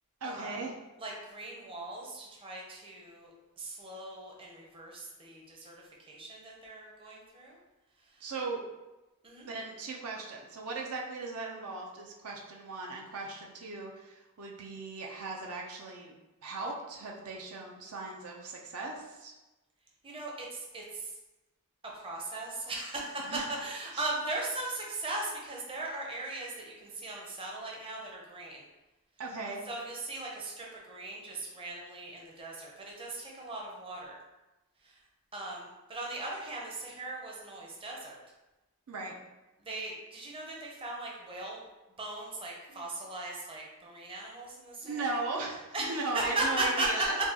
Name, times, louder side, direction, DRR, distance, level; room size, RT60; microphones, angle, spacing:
voice 1, 0.2-0.8 8.2-8.6 9.4-16.2 16.4-19.3 23.3-23.5 23.9-24.1 29.2-29.6 38.9-39.2 42.7-42.9 44.8-47.2, right 3 dB, 70° right, 0 dB, 0.5 m, -38 dB
voice 2, 1.0-7.6 8.1-8.2 9.2-9.5 20.0-21.1 21.9-23.2 23.5-28.6 29.7-34.2 34.8-34.9 35.3-38.2 39.6-41.7 42.0-45.2 45.7-47.1, right 2 dB, 25° right, -2 dB, 0.6 m, -38 dB
4.6 x 2.3 x 2.8 m, 1.1 s
head